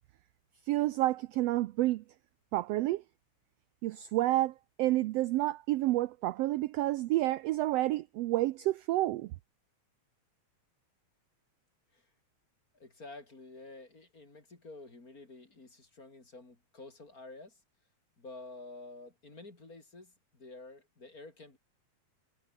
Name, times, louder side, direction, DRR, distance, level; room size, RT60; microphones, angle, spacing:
voice 1, 0.7-2.0 2.5-3.0 3.8-9.3, right 16 dB, 80° right, 1.5 m, -29 dB
voice 2, 12.7-17.6 18.2-21.6, left 2 dB, 30° left, 4.0 m, -50 dB
omnidirectional pair, 3.4 m